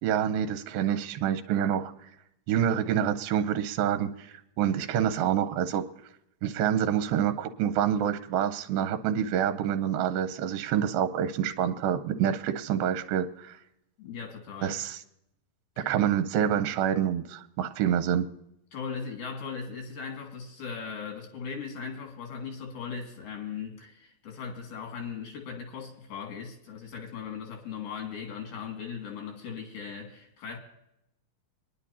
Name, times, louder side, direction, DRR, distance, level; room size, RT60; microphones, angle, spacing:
voice 1, 0.0-2.1 2.5-5.8 6.4-13.6 14.6-15.0 15.8-18.3, right 9 dB, 80° right, 2.5 m, -27 dB
voice 2, 14.0-14.8 18.7-30.6, left 6 dB, 90° left, 4.0 m, -38 dB
24.5 x 10.5 x 2.8 m
omnidirectional pair, 4.2 m